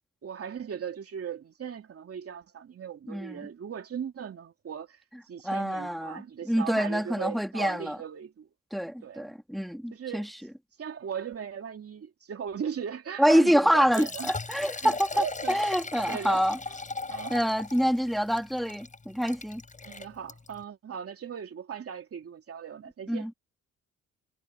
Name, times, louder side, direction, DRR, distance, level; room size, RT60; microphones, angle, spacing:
voice 1, 0.2-5.0 5.3-8.5 9.0-9.3 9.9-10.3 10.8-14.3 14.8-15.6 16.1-16.8 17.1-17.4 19.8-23.3, right 7 dB, 50° right, 3.0 m, -38 dB
voice 2, 3.1-3.4 5.4-8.0 8.7-10.3 13.2-16.6 17.3-19.6 23.1-23.3, equal, ahead, 3.3 m, -26 dB
Liquid, 13.7-20.6, left 3 dB, 25° left, 6.7 m, -39 dB
cardioid pair, 90°, 30 cm